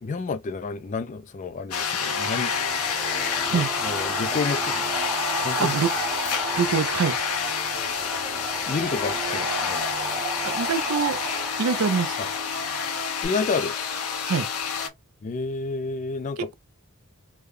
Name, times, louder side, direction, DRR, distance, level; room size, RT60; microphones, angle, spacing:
voice 1, 0.0-2.9 3.2-5.0 5.4-5.8 8.7-9.9 12.2-12.3 13.2-13.8 15.2-16.5, left 4 dB, 35° left, 0.3 m, -30 dB
sound 1, 1.7-14.9, left 6 dB, 85° left, 0.8 m, -28 dB
sound 2, 2.1-13.3, right 3 dB, 20° right, 0.9 m, -34 dB
voice 2, 6.6-7.2 10.4-11.2 11.6-12.2 14.2-14.5 16.4-16.5, right 6 dB, 75° right, 0.5 m, -24 dB
3.5 x 2.2 x 3.2 m
head